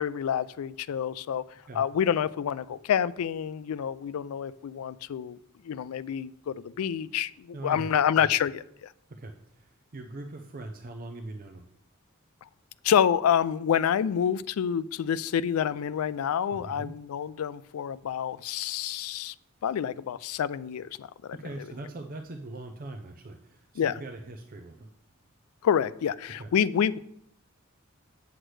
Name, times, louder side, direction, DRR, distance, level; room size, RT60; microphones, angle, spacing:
voice 1, 0.0-1.4 1.7-5.4 5.7-8.9 12.8-19.3 19.6-21.4 23.8-24.0 25.6-27.0, left 8 dB, 90° left, 0.3 m, -28 dB
voice 2, 7.5-8.3 9.1-11.6 16.5-17.0 21.4-24.9 26.4-26.5, right 2 dB, 45° right, 0.5 m, -41 dB
8.0 x 7.6 x 3.2 m
head